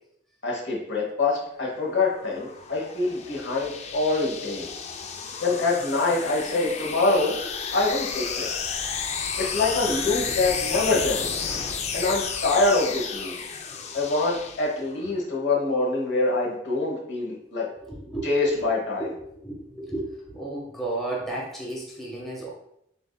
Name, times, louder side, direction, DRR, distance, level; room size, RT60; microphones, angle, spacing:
voice 1, 0.4-4.7 5.4-7.3 7.7-8.5 9.4-11.3 11.9-13.3 13.9-17.6 18.2-19.1, left 3 dB, 65° left, -3 dB, 1.2 m, -25 dB
sound 1, 1.6-15.0, left 6 dB, 35° left, 0.3 m, -32 dB
voice 2, 17.8-18.6 19.0-19.1 19.4-22.5, right 2 dB, ahead, -4 dB, 0.9 m, -33 dB
6.8 x 2.6 x 2.2 m, 0.77 s
head